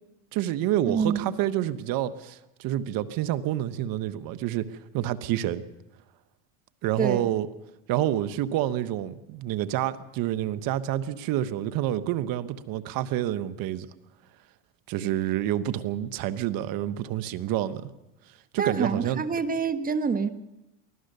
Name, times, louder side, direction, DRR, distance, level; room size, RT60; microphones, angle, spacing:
voice 1, 0.3-4.7 4.9-5.6 6.8-7.5 7.9-13.9 14.9-17.9 18.5-19.2, right 12 dB, 55° right, 1.2 m, -28 dB
voice 2, 0.8-1.3 7.0-7.3 18.6-20.3, right 5 dB, 20° right, 1.3 m, -27 dB
24.0 x 17.0 x 6.8 m
supercardioid pair, 120°, 41 cm